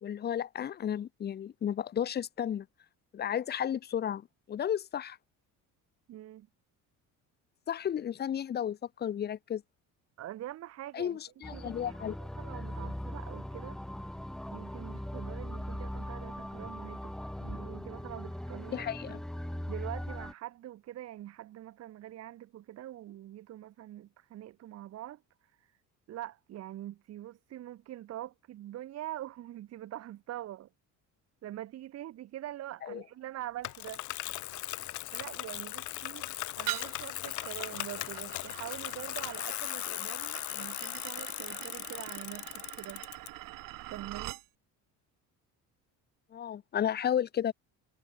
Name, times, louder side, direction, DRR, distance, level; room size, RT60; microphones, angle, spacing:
voice 1, 0.0-2.7 3.1-5.2 7.7-9.6 10.9-12.2 18.7-19.2 32.8-33.0 46.3-47.5, left 9 dB, 30° left, 0.8 m, -33 dB
voice 2, 6.1-6.5 10.2-11.2 11.5-13.8 14.5-17.1 17.4-18.9 19.7-25.2 26.1-30.7 31.4-34.0 35.1-43.0 43.9-44.4, right 13 dB, 50° right, 1.2 m, -44 dB
sound 1, 11.4-20.3, left 1 dB, ahead, 0.4 m, -40 dB
Bicycle, 33.6-43.3, left 18 dB, 60° left, 0.7 m, -38 dB
sound 2, 36.7-44.5, right 18 dB, 75° right, 2.5 m, -44 dB
cardioid pair, 155°, 33 cm